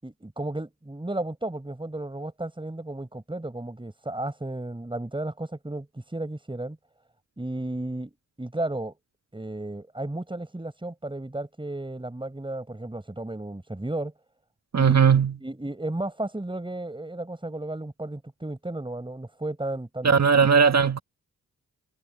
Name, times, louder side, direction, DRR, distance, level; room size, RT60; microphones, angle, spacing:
voice 1, 0.0-6.8 7.4-8.1 8.4-8.9 9.3-14.1 14.7-20.2, right 1 dB, 15° right, 5.1 m, -33 dB
voice 2, 14.7-15.4 20.0-21.0, right 6 dB, 50° right, 1.8 m, -18 dB
cardioid pair, 60°, 34 cm